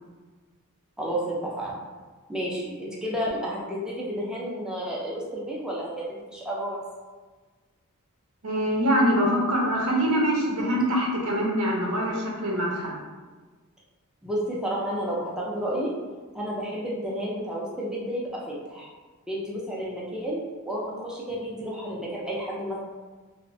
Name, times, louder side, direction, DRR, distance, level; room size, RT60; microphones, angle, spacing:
voice 1, 1.0-1.8 2.3-6.8 14.2-15.9 16.3-18.9 19.3-20.4 20.6-22.8, equal, 5° right, -5 dB, 0.4 m, -31 dB
voice 2, 8.4-12.9, equal, 80° right, -2 dB, 0.7 m, -24 dB
2.9 x 2.1 x 2.6 m, 1.4 s
head